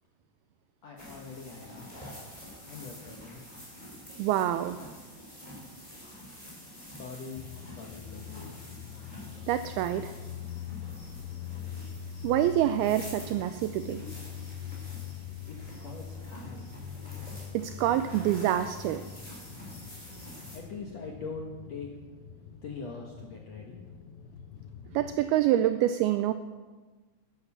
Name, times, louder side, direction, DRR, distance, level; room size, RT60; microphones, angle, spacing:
voice 1, 0.8-1.9 2.7-3.4 6.8-8.6 15.5-16.8 20.5-21.9 22.6-23.8, left 4 dB, 70° left, 0 dB, 1.6 m, -43 dB
sound 1, 1.0-20.6, equal, 10° left, 4.6 m, -47 dB
voice 2, 4.2-4.8 9.5-10.1 12.2-14.1 17.5-19.0 24.9-26.3, right 12 dB, 85° right, 11 dB, 2.2 m, -26 dB
sound 2, 7.4-25.2, left 8 dB, 90° left, 2.0 m, -43 dB
12.0 x 11.5 x 7.2 m, 1.3 s
omnidirectional pair, 4.9 m